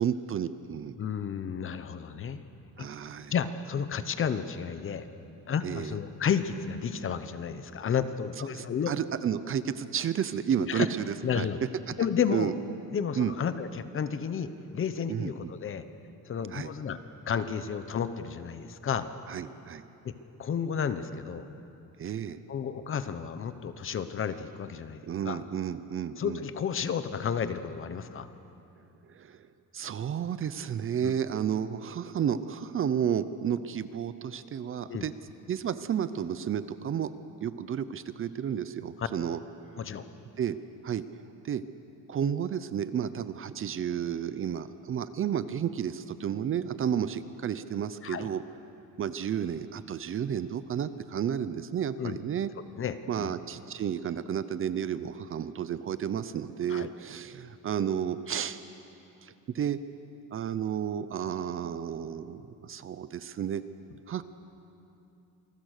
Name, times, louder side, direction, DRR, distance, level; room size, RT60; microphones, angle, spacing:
voice 1, 0.0-0.9 2.8-3.3 5.6-5.9 8.5-11.5 12.3-12.5 13.2-13.3 15.1-15.3 16.5-16.7 19.3-19.8 22.0-22.4 25.1-26.4 29.1-29.5 29.7-35.1 35.5-37.1 37.4-39.8 40.4-40.6 40.8-41.0 41.4-41.6 42.1-48.4 49.0-52.5 53.1-58.6 59.2-59.8 60.3-63.6 64.1-64.2, right 8 dB, 40° right, 13 dB, 0.6 m, -32 dB
voice 2, 1.0-2.4 2.8-2.9 3.3-5.1 5.5-8.9 10.7-10.9 11.2-11.6 12.0-12.5 12.9-15.8 16.3-17.0 17.3-19.1 20.0-20.1 20.4-21.5 22.5-25.4 26.2-28.3 31.0-31.2 34.8-35.1 39.0-39.1 39.8-40.0 48.0-48.3 52.0-52.2 52.8-53.3 56.7-56.9, left 7 dB, 40° left, 11 dB, 0.9 m, -32 dB
27.5 x 20.0 x 6.6 m, 2.8 s
cardioid pair, 175°, 34 cm